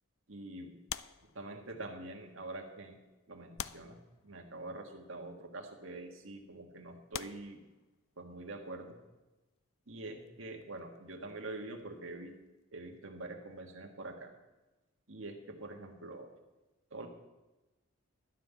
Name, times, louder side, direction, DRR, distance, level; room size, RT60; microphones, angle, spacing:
voice 1, 0.3-0.7 1.3-3.0 3.3-7.6 8.2-9.0 9.9-12.4 12.7-14.3 15.1-16.3 16.9-17.1, right 2 dB, 60° right, 3 dB, 1.6 m, -45 dB
sound 1, 0.9-1.9 2.7-2.8 3.6-4.6 5.6-5.8 6.5-6.6 7.1-8.3 10.2-12.0 12.3-12.5, left 10 dB, 65° left, 0.4 m, -46 dB
12.5 x 5.7 x 8.2 m, 1.1 s
head